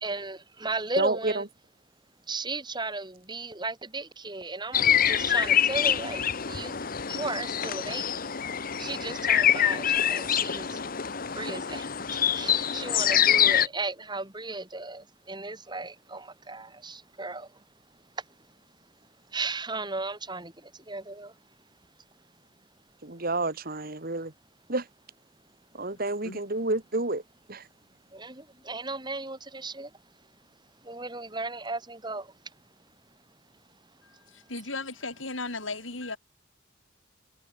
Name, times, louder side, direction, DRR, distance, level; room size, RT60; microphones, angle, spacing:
voice 1, 0.0-1.4 2.3-8.3 8.8-10.8 11.3-17.6 17.9-18.6 19.3-21.4 28.1-30.3 30.8-32.6 34.1-34.2, right 3 dB, 20° right, 5.2 m, -36 dB
voice 2, 1.0-1.3 23.0-24.3 24.7-24.9 25.7-27.2 27.5-27.6, right 2 dB, 50° right, 2.0 m, -29 dB
sound 1, 4.7-13.7, left 9 dB, 45° left, 1.0 m, -25 dB
voice 3, 34.0-36.2, left 3 dB, 75° left, 6.1 m, -36 dB
head